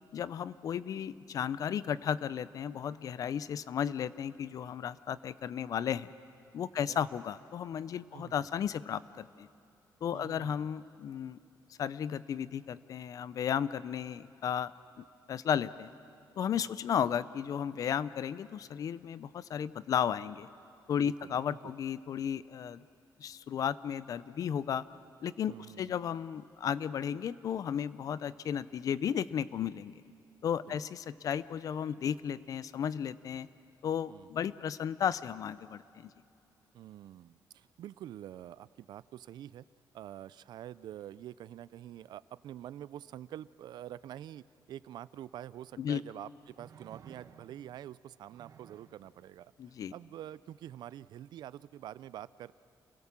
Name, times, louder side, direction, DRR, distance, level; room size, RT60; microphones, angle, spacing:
voice 1, 0.1-6.1 6.5-9.5 10.0-11.4 11.8-14.7 15.3-15.9 16.4-20.5 20.9-22.8 23.2-24.8 25.2-29.9 30.4-33.5 33.8-36.1 45.8-46.0 49.6-49.9, left 8 dB, 55° left, 17 dB, 0.5 m, -34 dB
voice 2, 10.1-10.7 16.5-16.7 21.0-21.7 25.5-26.0 30.7-30.9 34.1-34.3 36.7-39.6 39.9-49.5 49.9-52.5, right 11 dB, 75° right, 18 dB, 0.4 m, -47 dB
sound 1, 45.2-45.3 46.5-47.7 48.3-49.0 50.9-51.0, right 7 dB, 55° right, 1.2 m, -55 dB
28.5 x 17.5 x 7.4 m, 2.6 s
wide cardioid pair, 170°, 7 cm